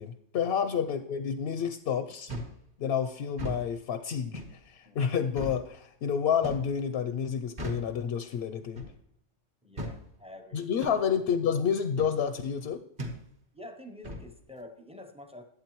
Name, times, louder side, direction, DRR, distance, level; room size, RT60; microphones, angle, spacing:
voice 1, 0.0-2.3 2.8-8.8 10.5-12.8, left 7 dB, 65° left, 9 dB, 0.7 m, -29 dB
sound 1, 2.3-2.6 3.3-3.6 4.3-4.6 5.4-5.6 6.4-6.7 7.6-7.9 8.8-9.0 9.8-10.0 10.8-11.0 12.0-12.2 13.0-13.2 14.0-14.3, equal, 45° right, 1.5 m, -37 dB
voice 2, 9.6-10.7 11.0-11.2 13.5-15.4, left 1 dB, 10° right, 6 dB, 0.5 m, -48 dB
11.5 x 8.1 x 3.0 m, 0.73 s
omnidirectional pair, 1.3 m